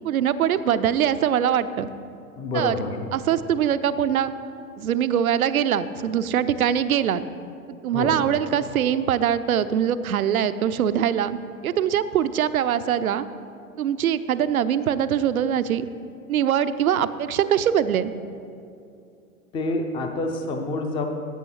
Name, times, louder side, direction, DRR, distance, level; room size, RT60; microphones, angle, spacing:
voice 1, 0.0-1.9 2.5-2.7 3.1-4.3 4.8-7.2 7.8-13.3 13.8-15.9 16.3-18.1, right 9 dB, 75° right, 13 dB, 0.5 m, -23 dB
voice 2, 2.4-3.0 7.9-8.2 19.5-21.1, left 2 dB, 10° left, 5 dB, 0.4 m, -27 dB
14.5 x 7.4 x 3.1 m, 2.5 s
figure-of-eight pair, 95°, 43 cm